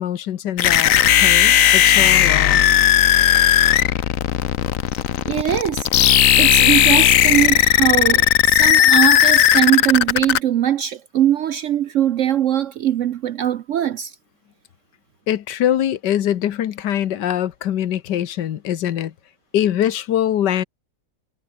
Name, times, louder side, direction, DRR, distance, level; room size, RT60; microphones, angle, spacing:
voice 1, 0.0-2.6 15.3-19.1 19.5-20.6, left 11 dB, 80° left, 1.6 m, -23 dB
sound 1, 0.6-10.4, left 11 dB, 60° left, 1.1 m, -15 dB
voice 2, 5.3-14.1, right 11 dB, 70° right, 0.7 m, -21 dB
omnidirectional pair, 1.8 m